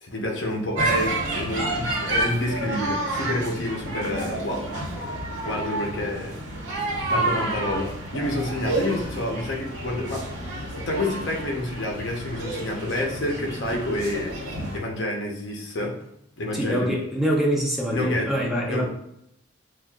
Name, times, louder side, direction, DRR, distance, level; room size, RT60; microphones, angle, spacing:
voice 1, 0.0-4.7 5.4-6.4 7.1-10.3 10.8-14.3 14.7-16.0 16.4-17.0 17.9-18.8, left 1 dB, 70° left, 0 dB, 0.9 m, -28 dB
sound 1, 0.7-14.8, right 2 dB, 90° right, 1.1 m, -30 dB
voice 2, 16.5-18.8, equal, ahead, -3 dB, 0.7 m, -25 dB
6.2 x 2.5 x 2.4 m, 0.78 s
head